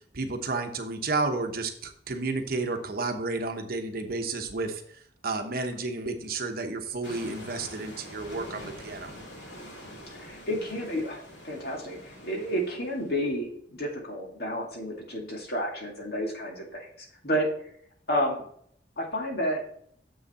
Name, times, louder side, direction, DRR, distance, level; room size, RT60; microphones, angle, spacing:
voice 1, 0.1-9.1, right 3 dB, 55° right, 6 dB, 1.0 m, -31 dB
sound 1, 7.0-13.4, equal, 75° left, 2.3 m, -45 dB
voice 2, 10.1-16.9 17.2-17.5 18.1-18.4 19.0-19.6, equal, 60° left, 0 dB, 2.1 m, -31 dB
7.1 x 6.4 x 4.2 m, 0.64 s
head